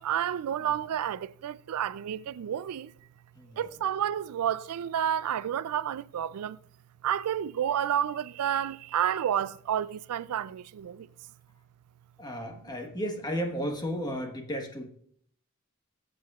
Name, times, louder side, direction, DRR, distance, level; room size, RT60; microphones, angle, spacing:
voice 1, 0.0-2.9 3.6-6.6 7.0-11.1, right 9 dB, 85° right, 0.4 m, -30 dB
voice 2, 12.2-14.9, equal, 20° left, 1.3 m, -34 dB
21.5 x 7.6 x 2.4 m
head